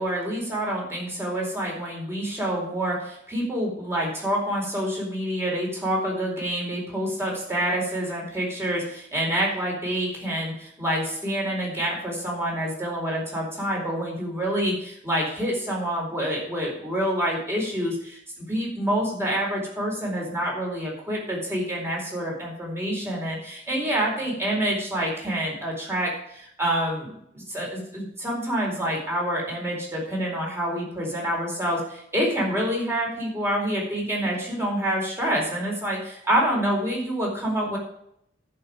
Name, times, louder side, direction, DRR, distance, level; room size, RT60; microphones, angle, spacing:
voice 1, 0.0-18.2 18.5-37.8, right 1 dB, 15° right, -3 dB, 4.2 m, -27 dB
11.0 x 5.6 x 7.7 m, 0.71 s
head